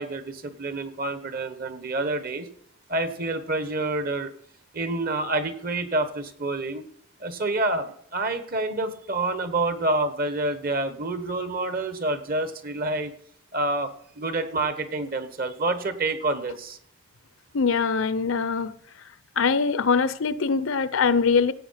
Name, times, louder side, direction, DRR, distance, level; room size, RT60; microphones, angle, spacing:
voice 1, 0.0-2.5 2.9-4.3 4.7-6.8 7.2-13.1 13.5-16.8, right 2 dB, 45° right, 1.2 m, -28 dB
voice 2, 17.5-18.7 19.4-21.5, left 5 dB, 70° left, 0.7 m, -22 dB
16.0 x 8.4 x 5.8 m
head